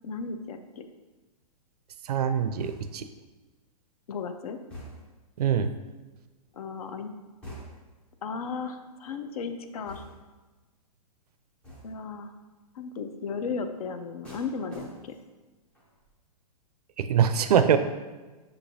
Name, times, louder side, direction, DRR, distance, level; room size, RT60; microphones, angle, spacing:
voice 1, 0.0-0.8 4.1-4.6 6.5-7.1 8.2-10.0 11.8-12.3 12.7-15.2, left 5 dB, 65° left, 8 dB, 0.5 m, -35 dB
voice 2, 2.1-3.0 5.4-5.7 17.0-17.8, right 8 dB, 75° right, 10 dB, 0.4 m, -23 dB
sound 1, 2.6-3.2 4.7-5.3 7.4-8.0 9.9-10.4 11.6-12.1 14.2-15.4 15.7-16.1, equal, 5° left, 0.4 m, -46 dB
6.5 x 3.0 x 2.6 m, 1.2 s
hypercardioid pair, 165°, 20 cm